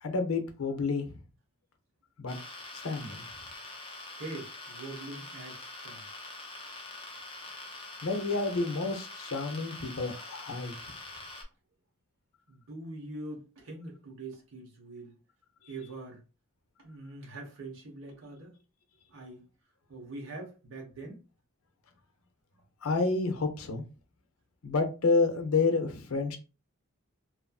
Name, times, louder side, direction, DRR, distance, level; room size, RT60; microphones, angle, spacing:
voice 1, 0.0-1.2 2.2-2.4 2.7-3.2 8.0-10.8 22.8-23.8 24.6-26.4, left 3 dB, 70° left, 0.6 m, -29 dB
sound 1, 2.3-11.4, left 2 dB, 25° left, 0.5 m, -44 dB
voice 2, 4.2-6.1 12.5-15.1 15.7-16.2 16.8-18.5 19.1-19.5 19.9-21.2, right 2 dB, 65° right, 0.9 m, -43 dB
2.9 x 2.5 x 2.2 m
head